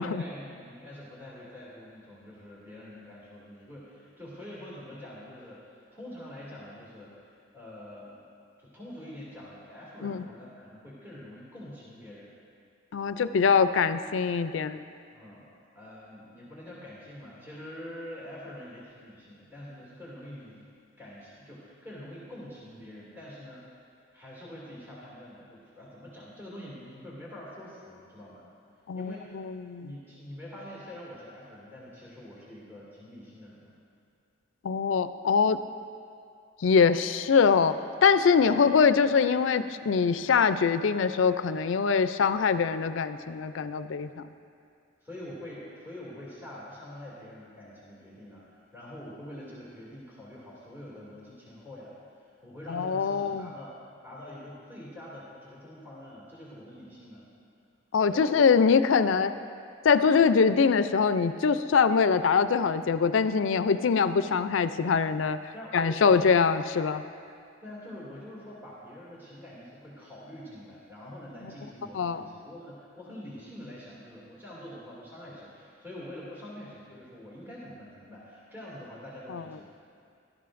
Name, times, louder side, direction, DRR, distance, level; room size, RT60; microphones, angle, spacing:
voice 1, 0.0-7.3 7.5-8.2 8.6-12.3 15.1-15.5 15.7-20.7 21.0-23.7 24.1-28.4 28.9-29.4 29.8-33.7 38.5-38.6 45.0-53.7 54.0-57.3 58.1-58.3 65.5-66.3 67.6-79.7, left 1 dB, 10° right, -7 dB, 2.5 m, -45 dB
voice 2, 12.9-14.8 28.9-29.9 34.6-35.6 36.6-37.8 38.0-44.2 52.7-53.5 57.9-59.3 59.8-65.4 65.7-67.0 71.4-71.5 71.9-72.2 79.3-79.4, left 5 dB, 80° left, 12 dB, 0.4 m, -23 dB
17.0 x 12.5 x 2.5 m, 2.4 s
head